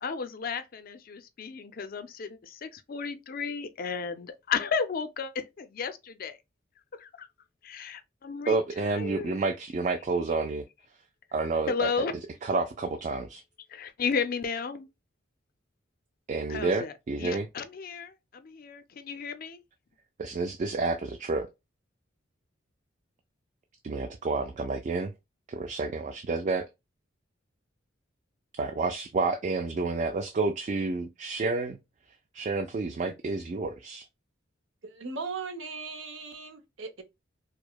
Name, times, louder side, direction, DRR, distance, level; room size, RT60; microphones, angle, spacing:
voice 1, 0.0-6.4 7.0-7.3 7.6-9.4 11.7-12.2 13.7-14.9 16.5-16.9 17.2-19.6, left 5 dB, 45° left, 0.4 m, -33 dB
voice 2, 8.5-10.7 11.3-11.9 12.4-13.4 16.3-17.5 20.2-21.5 23.8-25.1 25.5-26.7 28.6-31.8 32.3-34.1, right 3 dB, 35° right, 0.3 m, -29 dB
voice 3, 34.8-37.0, right 4 dB, 70° right, 0.8 m, -38 dB
4.7 x 2.0 x 2.2 m
head